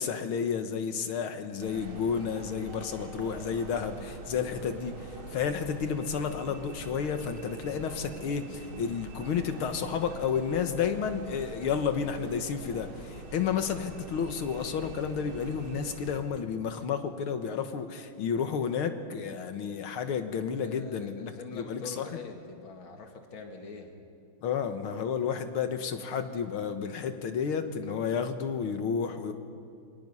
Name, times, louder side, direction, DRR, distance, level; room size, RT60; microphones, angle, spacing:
voice 1, 0.0-5.0 5.3-22.2 24.4-29.3, left 6 dB, 90° left, 8 dB, 2.2 m, -31 dB
sound 1, 1.6-16.2, right 2 dB, 80° right, 3.0 m, -44 dB
voice 2, 4.3-4.7 20.6-23.9, left 4 dB, 70° left, 3 dB, 2.8 m, -44 dB
27.5 x 24.0 x 5.6 m, 2.5 s
omnidirectional pair, 2.3 m